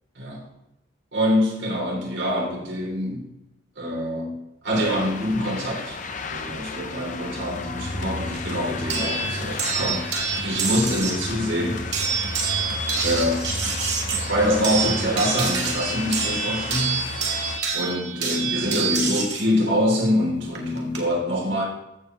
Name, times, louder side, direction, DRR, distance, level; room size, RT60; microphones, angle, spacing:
voice 1, 0.2-0.5 1.1-3.3 3.8-4.4 4.6-6.0 6.3-11.9 13.0-13.4 14.3-17.0 17.7-21.6, equal, 85° right, -1 dB, 3.4 m, -25 dB
sound 1, 4.7-17.6, left 4 dB, 45° left, 0.7 m, -34 dB
sound 2, 7.6-15.1, left 1 dB, 70° left, 1.8 m, -37 dB
sound 3, 8.9-11.3 11.9-19.4 20.5-21.0, right 5 dB, 70° right, 2.0 m, -27 dB
14.5 x 7.1 x 3.2 m, 0.88 s
head